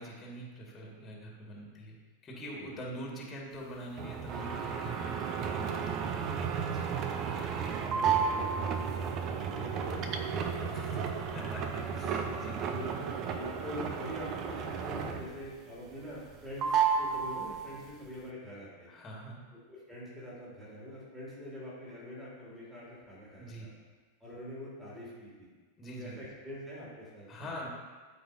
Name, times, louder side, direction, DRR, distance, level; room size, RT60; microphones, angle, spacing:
voice 1, 0.0-1.9 2.2-6.3 6.7-6.9 10.7-12.6 18.9-19.4 23.4-23.7 25.8-26.2 27.3-27.7, equal, 20° left, -3 dB, 1.8 m, -44 dB
sound 1, 4.0-15.5 15.8-16.3 16.6-17.9, right 6 dB, 35° right, 0.6 m, -33 dB
voice 2, 5.5-6.6 8.3-11.0 11.7-11.8 12.7-18.9 19.7-23.7 24.2-25.5 26.0-27.5, left 1 dB, 5° right, -9 dB, 2.5 m, -45 dB
13.0 x 4.8 x 2.7 m, 1.4 s
figure-of-eight pair, 90°, 0 cm